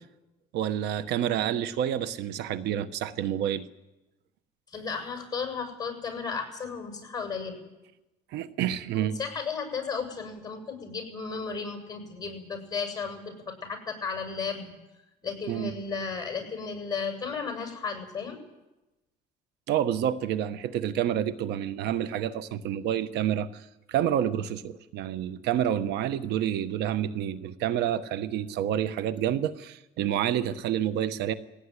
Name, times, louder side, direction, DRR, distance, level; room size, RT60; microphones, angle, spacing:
voice 1, 0.5-3.6 8.3-9.2 15.5-15.7 19.7-31.3, right 10 dB, 85° right, 13 dB, 1.2 m, -28 dB
voice 2, 4.7-7.6 8.9-14.7 15.2-18.4, left 5 dB, 20° left, 4 dB, 6.8 m, -34 dB
20.5 x 17.0 x 9.9 m, 1.0 s
cardioid pair, 110°, 17 cm